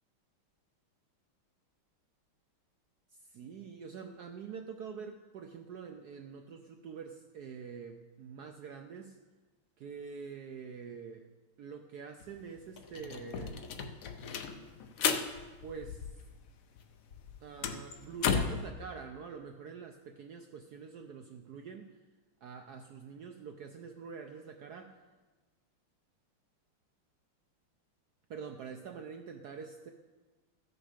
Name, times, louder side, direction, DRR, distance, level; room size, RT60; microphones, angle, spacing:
voice 1, 3.1-9.2 9.8-11.3 11.6-13.6 15.6-16.2 17.4-22.0 22.4-25.0 28.3-29.9, right 6 dB, 80° right, 5 dB, 0.9 m, -46 dB
sound 1, 12.2-12.3 12.6-16.5 16.8-18.7, left 6 dB, 75° left, 0.7 m, -35 dB
13.5 x 6.4 x 5.1 m, 1.3 s
omnidirectional pair, 2.4 m